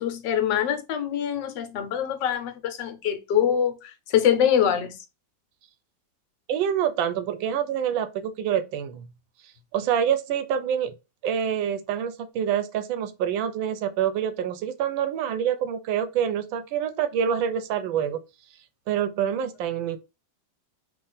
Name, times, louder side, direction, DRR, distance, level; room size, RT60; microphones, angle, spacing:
voice 1, 0.0-5.0, left 9 dB, 70° left, 1.4 m, -24 dB
voice 2, 6.5-9.1 9.7-10.9 11.2-18.2 18.9-20.0, right 9 dB, 85° right, 1.4 m, -26 dB
3.6 x 2.5 x 3.9 m
omnidirectional pair, 2.1 m